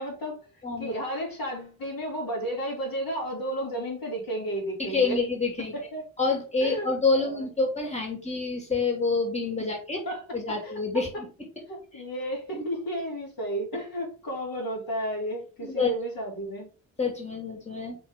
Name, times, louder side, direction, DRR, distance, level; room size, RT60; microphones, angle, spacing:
voice 1, 0.0-5.2 5.7-6.0 6.6-7.5 10.1-10.8 11.7-16.7, right 1 dB, 70° left, -1 dB, 3.5 m, -33 dB
voice 2, 0.6-0.9 4.8-5.7 6.2-10.0 10.3-11.3 12.5-12.6 15.6-15.9 17.0-18.0, left 4 dB, 20° left, 0 dB, 2.7 m, -27 dB
5.2 x 3.9 x 5.3 m, 0.36 s
cardioid pair, 65°, 36 cm